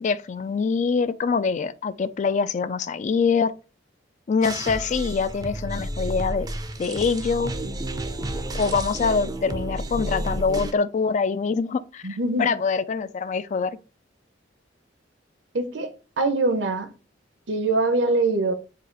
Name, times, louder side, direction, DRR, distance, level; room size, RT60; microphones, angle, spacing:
voice 1, 0.0-3.5 4.3-6.5 6.8-7.5 8.6-13.8, left 5 dB, 40° left, 0.3 m, -24 dB
sound 1, 4.4-10.7, right 1 dB, 20° right, 0.5 m, -31 dB
voice 2, 12.0-12.5 15.5-16.9 17.5-18.5, right 2 dB, 70° right, 0.8 m, -23 dB
4.8 x 2.4 x 4.5 m
head